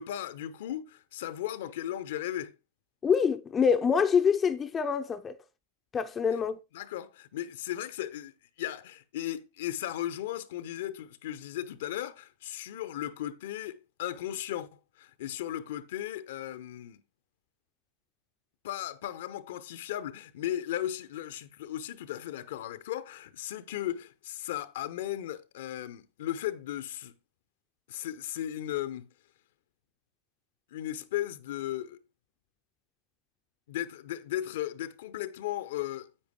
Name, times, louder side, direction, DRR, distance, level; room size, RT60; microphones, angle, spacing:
voice 1, 0.0-2.5 6.7-14.7 15.0-17.0 18.6-27.1 27.9-29.1 30.7-32.0 33.7-36.1, left 12 dB, 55° left, 0.8 m, -36 dB
voice 2, 3.0-5.4 5.9-6.6, left 6 dB, 20° left, 0.7 m, -25 dB
10.0 x 8.7 x 3.1 m
figure-of-eight pair, 90°, 0 cm